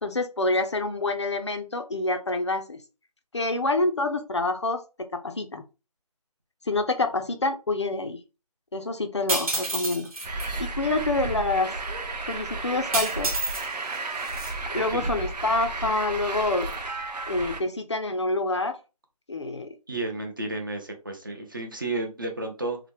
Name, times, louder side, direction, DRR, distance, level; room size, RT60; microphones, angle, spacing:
voice 1, 0.0-2.8 3.3-4.8 5.1-5.6 6.7-8.2 8.7-10.1 10.6-11.7 12.3-13.3 14.7-16.7 17.3-18.8 19.3-19.7, left 2 dB, 45° left, 6 dB, 0.4 m, -27 dB
sound 1, 9.3-10.5 12.9-13.7 13.9-14.5, right 2 dB, 60° right, 1.1 m, -28 dB
Truck, 10.2-17.6, right 3 dB, 90° right, 0.6 m, -33 dB
voice 2, 19.9-22.8, right 2 dB, 30° right, 3 dB, 0.5 m, -32 dB
2.9 x 2.0 x 3.1 m, 0.30 s
figure-of-eight pair, 170°, 20 cm